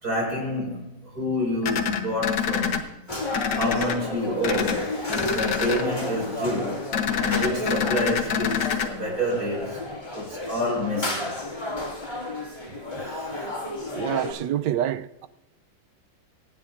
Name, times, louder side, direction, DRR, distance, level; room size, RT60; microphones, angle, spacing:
voice 1, 0.0-2.8 3.5-6.9 7.2-9.9 10.1-11.3 13.0-13.5, left 1 dB, 50° right, 5.8 m, -28 dB
sound 1, 1.6-2.8 3.3-4.0 4.4-4.8 5.1-5.8 6.9-8.9, left 7 dB, 65° left, 1.7 m, -26 dB
sound 2, 3.1-14.3, left 2 dB, 25° left, 2.2 m, -32 dB
voice 2, 13.9-15.3, right 11 dB, 75° right, 1.2 m, -27 dB
27.0 x 9.6 x 2.6 m
omnidirectional pair, 2.0 m